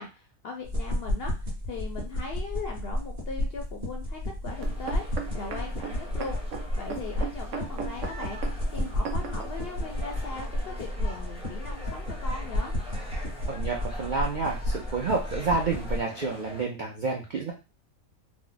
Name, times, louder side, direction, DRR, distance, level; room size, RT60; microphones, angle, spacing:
voice 1, 0.0-12.7, left 4 dB, 65° left, 1 dB, 0.6 m, -39 dB
sound 1, 0.6-16.0, left 1 dB, 35° right, 1.0 m, -32 dB
sound 2, 4.5-16.6, left 1 dB, 5° right, 0.5 m, -45 dB
sound 3, 4.6-9.5 10.2-10.3, right 6 dB, 65° right, 0.9 m, -37 dB
voice 2, 13.5-17.5, right 4 dB, 80° right, 0 dB, 0.4 m, -29 dB
3.0 x 2.0 x 3.8 m, 0.29 s
omnidirectional pair, 1.5 m